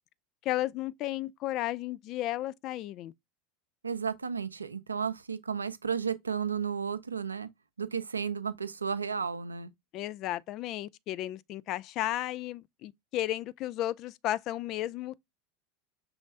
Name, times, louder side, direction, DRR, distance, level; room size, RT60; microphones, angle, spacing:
voice 1, 0.4-3.1 9.9-15.2, left 14 dB, 45° left, 0.3 m, -34 dB
voice 2, 3.8-7.5 7.8-9.7, right 6 dB, 80° right, 0.4 m, -33 dB
6.2 x 3.1 x 2.5 m
figure-of-eight pair, 80°, 0 cm